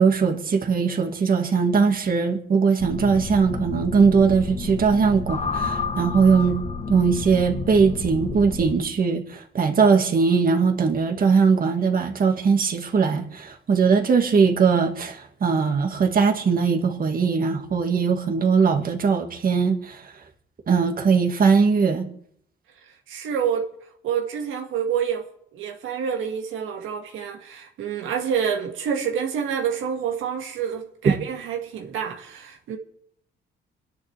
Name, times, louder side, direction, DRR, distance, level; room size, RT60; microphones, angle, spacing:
voice 1, 0.0-6.6 6.9-20.0 20.7-22.1, right 5 dB, 45° right, 2.1 m, -20 dB
sound 1, 2.8-8.8, left 4 dB, 35° left, 1.4 m, -30 dB
voice 2, 23.1-23.7 24.0-25.3 25.5-32.8, right 7 dB, 85° right, 2.1 m, -27 dB
27.0 x 10.5 x 3.5 m
cardioid pair, 90°, 20 cm